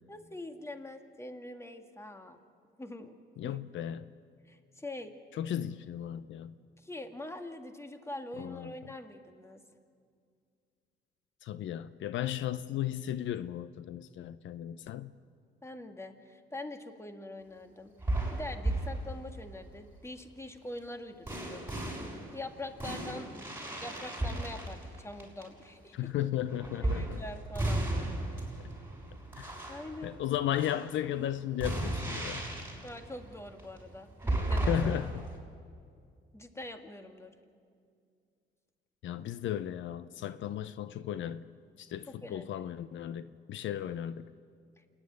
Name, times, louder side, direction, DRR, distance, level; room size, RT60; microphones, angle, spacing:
voice 1, 0.1-2.4 2.8-3.1 3.4-3.6 4.4-5.1 6.8-9.6 15.6-17.9 18.3-21.6 22.0-23.3 23.8-26.1 26.7-27.8 29.7-30.2 32.8-34.9 36.3-37.3 42.1-42.6 44.8-44.9, left 1 dB, 15° left, 1.7 m, -44 dB
voice 2, 3.4-4.1 5.4-6.6 8.4-8.7 11.4-15.1 25.9-27.2 29.4-29.5 30.0-32.4 34.7-35.3 39.0-41.5 41.8-44.3, left 11 dB, 70° left, 0.6 m, -35 dB
sound 1, 18.0-19.5 21.3-25.6 26.4-35.4, right 1 dB, 10° right, 6.3 m, -35 dB
27.5 x 10.0 x 9.5 m
cardioid pair, 90°, 20 cm